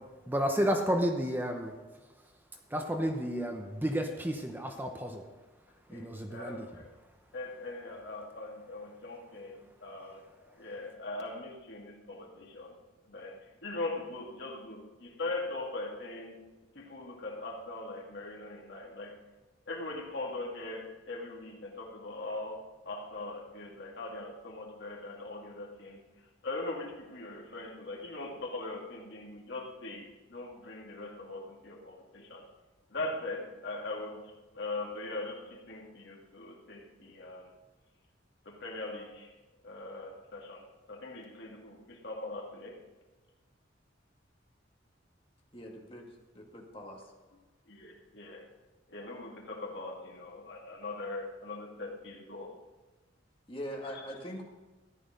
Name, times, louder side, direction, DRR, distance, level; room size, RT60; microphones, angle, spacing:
voice 1, 0.3-1.8 2.7-5.3 5.9-6.7, equal, 10° right, 4 dB, 0.9 m, -31 dB
voice 2, 5.9-6.9 7.3-10.2 10.5-12.8 13.1-16.4 16.7-19.2 19.7-26.0 26.4-32.5 32.9-37.5 38.4-39.3 39.6-42.8 47.7-48.5 48.9-52.6 53.8-54.0, left 2 dB, 65° left, -1 dB, 2.4 m, -41 dB
voice 3, 45.5-47.1 53.5-54.4, equal, 30° left, -1 dB, 2.2 m, -42 dB
14.0 x 11.0 x 5.2 m, 1.2 s
head